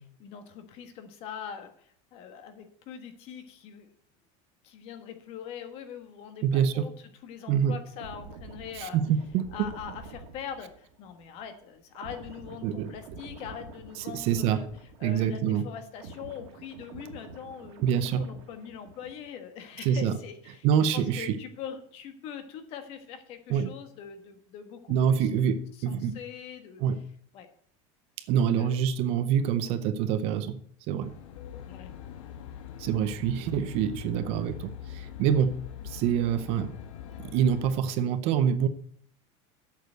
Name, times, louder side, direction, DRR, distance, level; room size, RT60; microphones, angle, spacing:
voice 1, 0.2-3.9 4.6-6.9 7.2-9.0 9.5-14.7 15.0-20.7 20.9-25.3 25.7-26.8 27.3-27.5 28.5-28.8 31.7-32.0, left 8 dB, 40° left, 8 dB, 1.4 m, -42 dB
voice 2, 6.4-6.9 7.5-7.8 8.7-9.7 12.6-12.9 14.1-14.7 15.0-15.7 17.8-18.3 19.8-20.1 20.6-21.4 23.5-23.7 24.9-26.2 26.8-27.0 28.3-30.6 30.9-31.1 32.8-36.8 37.2-38.7, right 8 dB, 40° right, 11 dB, 0.7 m, -26 dB
sound 1, 7.9-15.4 15.7-19.4 19.7-20.0, right 3 dB, 65° right, 1.9 m, -47 dB
Aircraft, 31.0-37.7, left 9 dB, 80° left, 1.4 m, -43 dB
8.1 x 6.7 x 8.0 m, 0.63 s
supercardioid pair, 175°, 16 cm